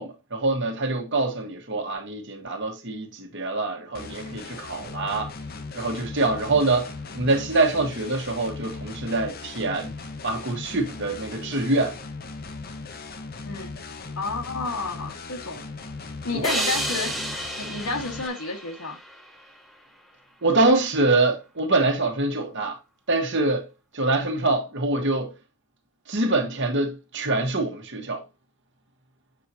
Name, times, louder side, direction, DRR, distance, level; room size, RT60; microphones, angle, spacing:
voice 1, 0.0-5.3 5.7-9.9 10.2-12.0 16.3-16.6 20.4-22.8 23.1-25.3 26.1-28.2, right 2 dB, 55° right, 1.3 m, -25 dB
sound 1, 3.9-18.3, left 3 dB, 45° left, 0.7 m, -38 dB
voice 2, 14.2-15.7 16.2-17.1 17.6-19.0, left 3 dB, 80° left, 1.8 m, -31 dB
sound 2, 16.4-19.7, right 1 dB, ahead, 1.0 m, -31 dB
7.3 x 5.5 x 2.9 m
head